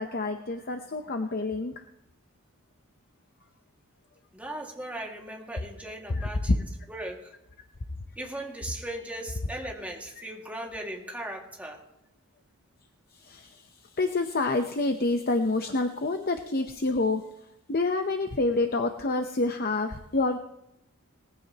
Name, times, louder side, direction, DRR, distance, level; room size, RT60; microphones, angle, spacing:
voice 1, 0.0-1.9 6.1-6.6 13.1-17.3 17.7-20.4, left 2 dB, 45° left, 6 dB, 0.7 m, -28 dB
voice 2, 4.3-6.5 6.9-7.3 8.2-11.8, right 1 dB, 5° right, -1 dB, 2.0 m, -38 dB
19.5 x 15.0 x 2.9 m, 0.82 s
head